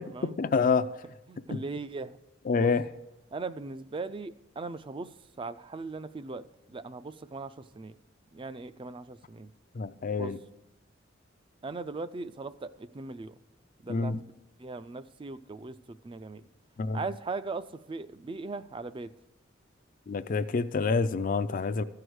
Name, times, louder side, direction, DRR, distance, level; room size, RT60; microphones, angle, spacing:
voice 1, 0.4-0.9 1.5-1.6 2.5-2.9 9.8-10.4 13.9-14.2 16.8-17.0 20.1-21.8, left 4 dB, 45° left, 0.4 m, -27 dB
voice 2, 1.3-2.2 2.6-2.7 3.3-7.9 8.3-9.5 10.2-10.3 11.6-13.3 13.8-14.3 14.6-16.4 16.9-19.1, right 3 dB, 25° right, 0.4 m, -39 dB
14.0 x 4.8 x 7.9 m
head